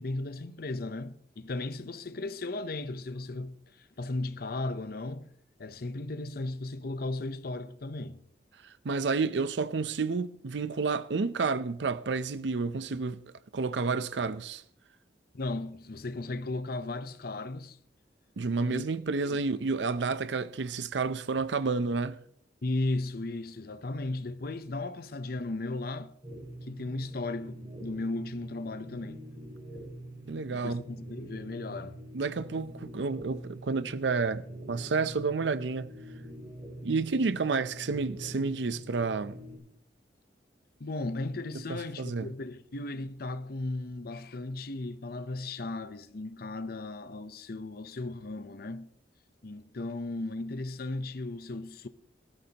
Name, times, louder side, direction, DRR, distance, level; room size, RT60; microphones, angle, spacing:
voice 1, 0.0-5.3 5.6-8.2 15.3-17.8 18.6-18.9 19.2-19.4 22.6-26.2 26.6-29.2 30.5-32.0 40.8-48.9 49.4-51.9, left 2 dB, 60° left, 0.7 m, -36 dB
voice 2, 8.6-13.2 13.5-14.6 18.4-22.2 30.3-30.8 32.1-35.9 36.8-39.4 41.7-42.3, right 4 dB, 90° right, 0.6 m, -30 dB
sound 1, 26.2-39.6, right 1 dB, 25° right, 4.6 m, -44 dB
18.5 x 13.0 x 2.9 m
head